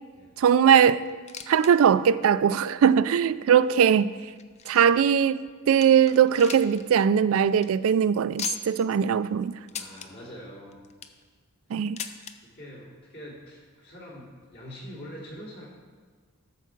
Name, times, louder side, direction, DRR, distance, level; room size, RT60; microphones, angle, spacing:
voice 1, 0.4-1.0 1.5-4.1 4.7-9.6 11.7-12.0, right 8 dB, 65° right, 15 dB, 0.3 m, -20 dB
sound 1, 1.1-1.7 2.0-2.1 2.8-2.9 3.6-5.1 5.5-5.6 5.8-6.8 7.1-7.2 7.5-7.7 8.4-8.9 9.7-10.1 10.7-11.2 12.0-12.3 13.3-13.4 13.6-13.7 14.5-14.6, left 8 dB, 30° left, 0.5 m, -37 dB
voice 2, 9.7-10.8 12.4-15.7, equal, 50° left, -4 dB, 2.9 m, -44 dB
12.5 x 4.7 x 7.2 m, 1.5 s
head